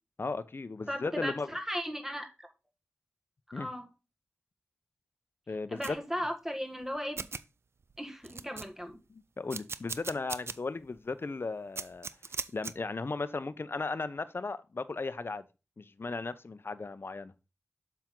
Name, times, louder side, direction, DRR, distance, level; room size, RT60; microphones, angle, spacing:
voice 1, 0.2-1.5 3.5-3.7 5.5-6.0 9.1-12.1 12.5-15.4 15.8-17.3, left 3 dB, 55° left, 0.7 m, -36 dB
voice 2, 0.9-2.5 3.5-3.9 5.7-7.2 8.0-9.0, equal, 10° right, 1.7 m, -36 dB
sound 1, 5.8-6.0 6.8-6.9 7.2-7.4 7.9-8.0 8.2-8.9 9.5-10.6 11.0-11.1 11.8-12.7, right 4 dB, 65° right, 0.5 m, -38 dB
7.3 x 6.0 x 3.8 m
cardioid pair, 50°, 5 cm